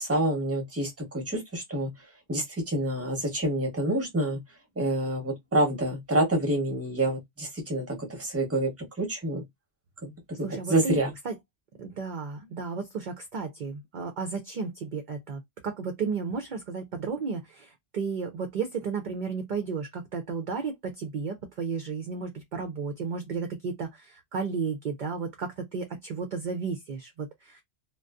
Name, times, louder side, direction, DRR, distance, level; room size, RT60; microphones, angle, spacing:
voice 1, 0.0-1.9 2.3-4.4 4.8-8.7 9.0-9.4 10.0-10.4 10.7-11.1, right 1 dB, 15° right, 0.8 m, -27 dB
voice 2, 10.4-11.0 11.2-11.3 11.8-27.6, right 5 dB, 55° right, 0.5 m, -33 dB
2.5 x 2.2 x 2.3 m
omnidirectional pair, 1.2 m